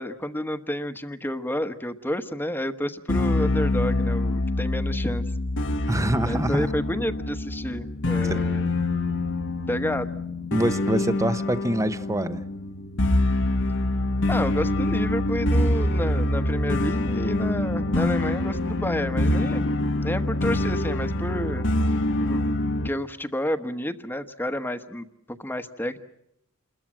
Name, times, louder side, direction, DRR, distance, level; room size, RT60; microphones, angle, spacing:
voice 1, 0.0-5.2 6.2-8.7 9.7-10.2 14.3-19.7 20.0-21.7 22.2-22.6 22.8-26.0, left 1 dB, 10° left, 1.2 m, -30 dB
sound 1, 3.1-22.9, left 2 dB, 60° left, 1.3 m, -25 dB
voice 2, 5.9-6.7 8.3-8.4 10.5-12.4, right 1 dB, 15° right, 0.9 m, -25 dB
28.5 x 21.5 x 7.4 m
head